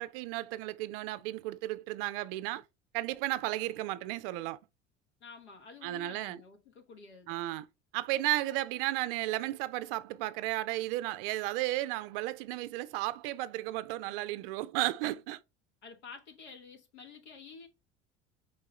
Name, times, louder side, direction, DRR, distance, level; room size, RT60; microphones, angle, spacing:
voice 1, 0.0-2.6 2.9-4.6 5.8-6.4 7.3-7.7 7.9-15.4, right 16 dB, 55° right, 0.5 m, -34 dB
voice 2, 5.2-7.5 15.8-17.7, left 5 dB, 75° left, 1.1 m, -50 dB
4.6 x 3.1 x 3.0 m
figure-of-eight pair, 65°, 35 cm